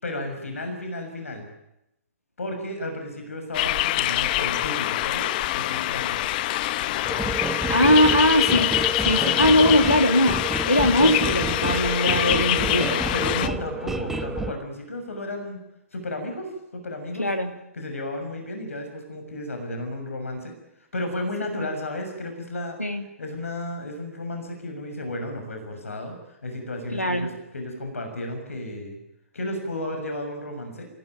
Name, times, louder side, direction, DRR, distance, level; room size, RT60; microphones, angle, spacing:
voice 1, 0.0-1.5 2.4-6.4 12.5-15.6 15.9-17.3 17.7-20.5 20.9-22.8 23.2-29.0 29.3-30.9, left 1 dB, 70° left, 5 dB, 6.7 m, -33 dB
sound 1, 3.5-13.5, left 15 dB, 35° left, 0.9 m, -25 dB
sound 2, 7.0-14.5, right 2 dB, 5° right, 1.3 m, -30 dB
voice 2, 7.7-8.7 9.0-13.0 17.2-17.5 22.8-23.0 26.9-27.3, equal, 90° left, 5 dB, 2.7 m, -20 dB
29.5 x 17.5 x 9.3 m, 0.88 s
figure-of-eight pair, 120°, 8 cm